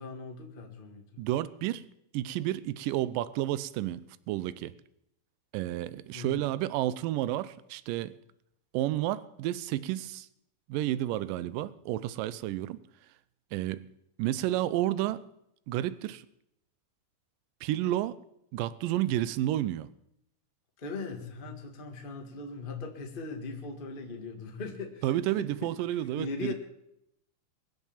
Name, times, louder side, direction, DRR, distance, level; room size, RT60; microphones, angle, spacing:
voice 1, 0.0-1.0 6.1-6.5 20.8-25.5 25.9-26.5, left 4 dB, 55° left, 0.5 m, -39 dB
voice 2, 1.2-1.8 2.1-4.7 5.5-8.1 8.7-10.3 10.7-12.8 13.5-13.9 14.2-15.3 15.7-16.2 17.6-18.2 18.5-19.9 25.0-26.5, right 14 dB, 80° right, 2.1 m, -31 dB
22.5 x 8.4 x 7.2 m
omnidirectional pair, 4.5 m